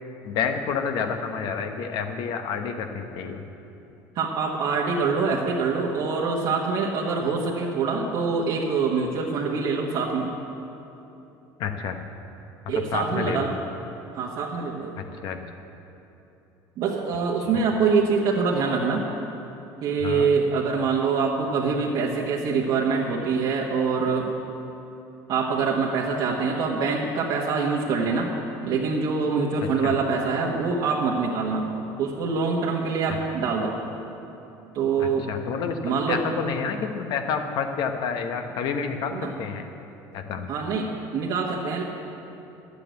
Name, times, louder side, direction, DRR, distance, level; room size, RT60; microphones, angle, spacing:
voice 1, 0.2-3.4 11.6-12.0 12.7-13.5 15.0-15.4 20.0-20.3 29.8-29.9 35.0-39.6 40.1-40.5, left 6 dB, 65° left, 6 dB, 1.1 m, -29 dB
voice 2, 4.1-10.3 12.7-13.6 14.1-14.9 16.8-19.1 19.8-24.3 25.3-28.3 28.6-31.7 32.0-33.7 34.7-35.3 35.8-36.2 39.1-39.3 40.5-41.8, right 5 dB, 60° right, -4 dB, 1.4 m, -25 dB
10.5 x 8.3 x 8.1 m, 3.0 s
supercardioid pair, 110°, 8 cm